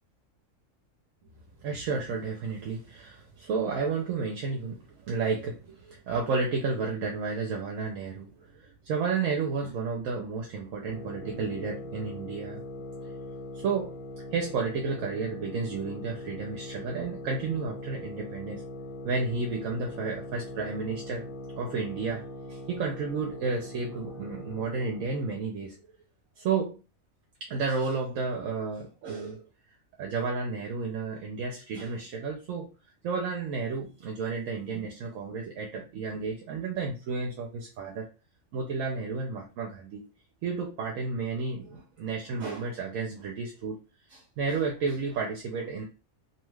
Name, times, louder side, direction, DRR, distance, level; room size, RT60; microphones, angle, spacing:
voice 1, 1.6-12.6 13.5-14.0 14.3-18.6 19.0-21.2 21.6-22.2 22.5-25.7 26.4-26.8 27.5-29.4 30.0-32.7 33.0-38.1 38.5-40.0 40.4-43.8 44.1-45.8, right 4 dB, 75° right, 1 dB, 1.0 m, -32 dB
sound 1, 10.9-25.4, left 1 dB, 45° left, 0.9 m, -41 dB
2.8 x 2.4 x 3.1 m, 0.32 s
omnidirectional pair, 1.4 m